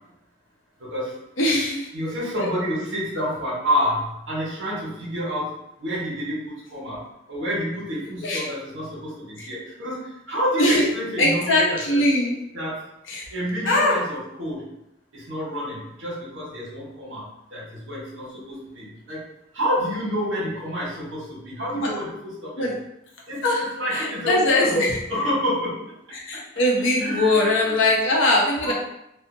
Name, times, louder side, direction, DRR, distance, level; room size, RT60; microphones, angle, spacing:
voice 1, 0.8-1.1 1.9-5.5 5.8-7.0 7.3-10.0 10.3-12.0 12.5-12.8 13.3-14.7 15.1-17.2 17.5-19.2 19.5-22.7 23.3-25.8 27.0-27.8 28.6-28.7, equal, 80° right, -5 dB, 1.2 m, -28 dB
voice 2, 1.4-1.9 2.3-2.5 8.2-8.5 9.4-9.5 10.6-10.8 11.2-12.3 13.1-13.3 13.6-14.0 21.7-21.9 22.6-22.7 23.4-23.6 23.9-25.0 26.1-28.7, left 1 dB, 75° left, -2 dB, 0.7 m, -21 dB
2.7 x 2.4 x 2.6 m, 0.84 s
head